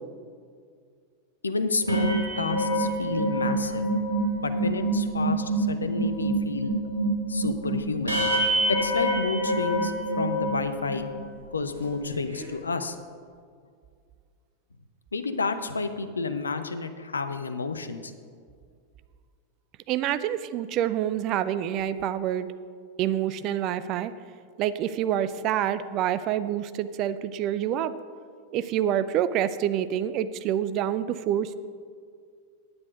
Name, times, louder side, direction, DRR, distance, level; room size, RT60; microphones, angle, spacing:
voice 1, 1.4-3.8 4.4-6.7 7.3-8.2 8.7-11.1 11.5-13.0 15.1-18.1, left 4 dB, 75° left, 9 dB, 0.7 m, -30 dB
sound 1, 1.8-11.2 11.7-11.9 12.1-12.5, right 1 dB, 75° right, 2.6 m, -26 dB
voice 2, 19.9-22.5 23.0-24.1 24.6-27.9 28.5-31.5, right 10 dB, 40° right, 13 dB, 0.5 m, -27 dB
9.7 x 9.6 x 5.1 m, 2.1 s
figure-of-eight pair, 90°, 0 cm